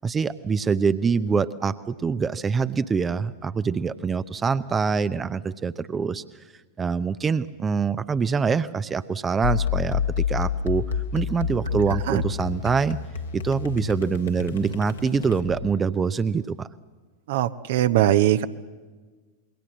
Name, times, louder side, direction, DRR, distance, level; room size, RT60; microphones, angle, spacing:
voice 1, 0.0-6.2 6.8-13.0 13.3-16.7, right 5 dB, 20° right, 14 dB, 0.7 m, -25 dB
sound 1, 9.4-15.8, left 7 dB, 65° left, 1.8 m, -29 dB
voice 2, 11.9-12.2 17.3-18.5, right 13 dB, 55° right, 12 dB, 0.9 m, -21 dB
27.5 x 22.0 x 7.6 m, 1.4 s
figure-of-eight pair, 90°, 0 cm